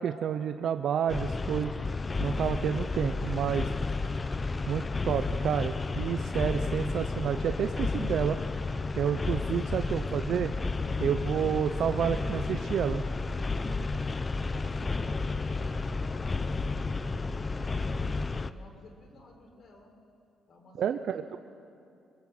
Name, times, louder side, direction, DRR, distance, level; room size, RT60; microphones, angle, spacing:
voice 1, 0.0-1.7 2.2-3.7 4.7-8.4 8.9-10.5 11.0-13.0 20.8-21.2, right 8 dB, 65° right, 8 dB, 0.7 m, -30 dB
sound 1, 1.1-18.5, left 3 dB, 30° left, 0.8 m, -32 dB
voice 2, 10.9-12.0 14.4-17.6 18.0-19.9 20.5-21.4, left 2 dB, 55° left, 3 dB, 4.9 m, -53 dB
24.0 x 21.0 x 7.8 m, 2.5 s
cardioid pair, 90°, 0 cm